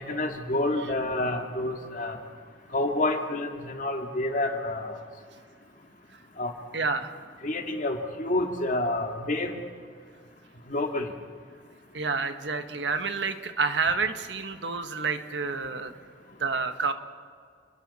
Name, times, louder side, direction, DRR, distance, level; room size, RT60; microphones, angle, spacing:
voice 1, 0.0-2.2 2.7-4.9 6.4-6.5 7.4-9.5 10.7-11.1, left 2 dB, 45° left, 3 dB, 2.1 m, -28 dB
voice 2, 6.7-7.1 11.9-15.9 16.4-16.9, right 4 dB, 85° right, 8 dB, 1.4 m, -29 dB
29.5 x 21.0 x 4.3 m, 2.1 s
head